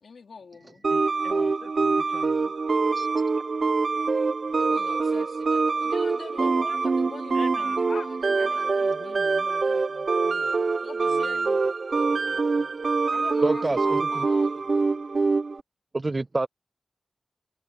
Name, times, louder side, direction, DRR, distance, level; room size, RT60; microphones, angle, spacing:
voice 1, 0.0-0.8 2.4-2.5 4.6-9.2 10.8-11.6 13.1-14.9, left 5 dB, 90° left, 4.0 m, -44 dB
voice 2, 0.8-2.5 7.3-10.5 11.0-11.5 12.0-12.7, left 4 dB, 70° left, 1.8 m, -45 dB
sound 1, 0.8-15.6, right 4 dB, 55° right, 0.8 m, -25 dB
voice 3, 13.4-14.3 15.9-16.5, right 2 dB, 30° right, 0.4 m, -27 dB
wide cardioid pair, 120°, 0 cm